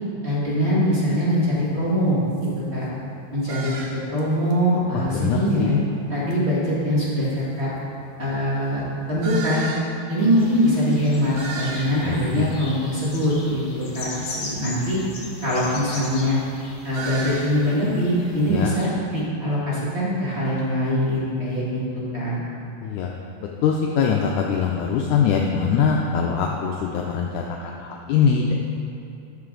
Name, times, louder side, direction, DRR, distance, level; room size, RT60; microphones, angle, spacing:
voice 1, 0.2-2.9 3.3-5.7 6.1-7.7 8.2-9.7 10.1-15.0 15.4-16.4 16.8-22.4, equal, 25° right, -8 dB, 1.5 m, -23 dB
sound 1, 1.2-1.3 1.9-2.0 2.3-2.5 3.5-4.2 4.5-4.6 6.3-6.4 7.2-7.3 9.2-9.9 10.4-10.5 10.7-10.8 11.0-12.1 12.6-13.0 16.9-17.6, right 3 dB, 90° right, 1.2 m, -34 dB
voice 2, 5.2-5.8 12.0-12.5 18.5-18.7 22.8-23.1 23.6-28.5, left 6 dB, 80° left, 0 dB, 1.8 m, -22 dB
sound 2, 10.2-18.9, left 2 dB, 60° left, 2.4 m, -39 dB
13.0 x 6.5 x 3.8 m, 2.7 s
omnidirectional pair, 4.1 m